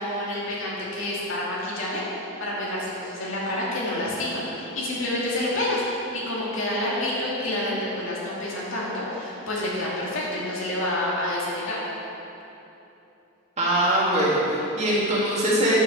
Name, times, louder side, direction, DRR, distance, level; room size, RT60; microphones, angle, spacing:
voice 1, 0.0-5.8 6.1-11.8, left 1 dB, 65° left, -6 dB, 2.4 m, -28 dB
voice 2, 13.6-15.8, right 1 dB, 30° right, -6 dB, 2.1 m, -22 dB
9.0 x 6.1 x 7.3 m, 2.9 s
head